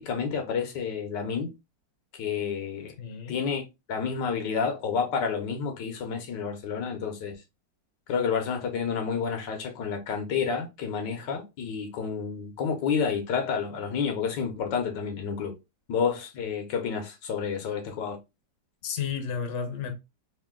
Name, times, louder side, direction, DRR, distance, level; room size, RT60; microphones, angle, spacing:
voice 1, 0.0-1.5 2.1-2.9 3.3-3.6 3.9-7.4 8.1-15.5 15.9-18.2, left 6 dB, 85° left, 1.6 m, -30 dB
voice 2, 3.0-3.4 18.8-19.9, left 7 dB, 50° left, 1.0 m, -32 dB
3.6 x 2.7 x 3.6 m
omnidirectional pair, 1.9 m